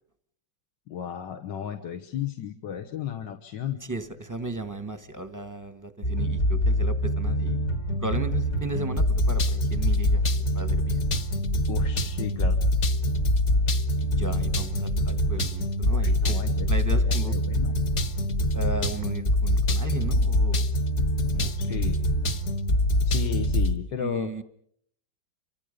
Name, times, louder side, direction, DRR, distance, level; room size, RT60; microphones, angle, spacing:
voice 1, 0.9-3.8 11.7-12.6 16.0-16.7 17.0-17.7 21.6-22.0 23.0-24.3, left 9 dB, 75° left, 6 dB, 1.9 m, -34 dB
voice 2, 3.8-7.7 8.0-11.0 14.0-16.4 16.7-17.4 18.5-20.6 21.3-21.8 24.0-24.4, right 2 dB, 15° right, 10 dB, 0.9 m, -36 dB
sound 1, 6.0-23.8, left 1 dB, 45° left, 1.3 m, -24 dB
29.0 x 25.0 x 5.2 m, 0.65 s
omnidirectional pair, 2.0 m